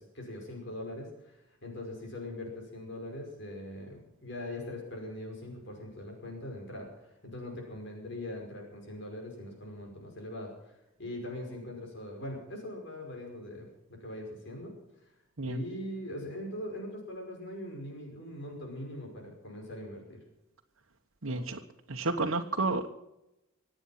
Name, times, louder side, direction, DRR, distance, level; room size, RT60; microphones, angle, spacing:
voice 1, 0.0-14.8 15.4-20.2 21.3-21.6, left 1 dB, 60° left, 1 dB, 5.5 m, -41 dB
voice 2, 21.2-21.6 21.9-22.9, right 3 dB, 85° right, 1 dB, 1.2 m, -31 dB
25.5 x 9.1 x 5.9 m, 0.90 s
head